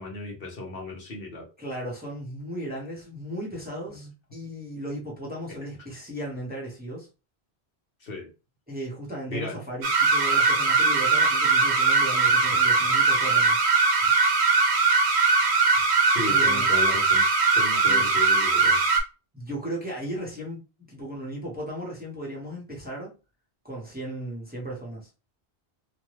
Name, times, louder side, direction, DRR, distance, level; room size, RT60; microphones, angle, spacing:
voice 1, 0.0-1.5 3.9-4.1 8.0-8.3 9.3-9.6 14.0-14.1 16.0-17.2 17.5-18.8, left 3 dB, 60° left, 1.1 m, -35 dB
voice 2, 1.6-7.1 8.7-13.6 16.3-16.8 17.8-18.1 19.3-20.6 20.9-23.1 23.6-25.1, right 1 dB, 10° right, 0.8 m, -36 dB
sound 1, 9.8-19.0, right 4 dB, 80° right, 0.9 m, -21 dB
2.7 x 2.2 x 3.1 m
omnidirectional pair, 1.1 m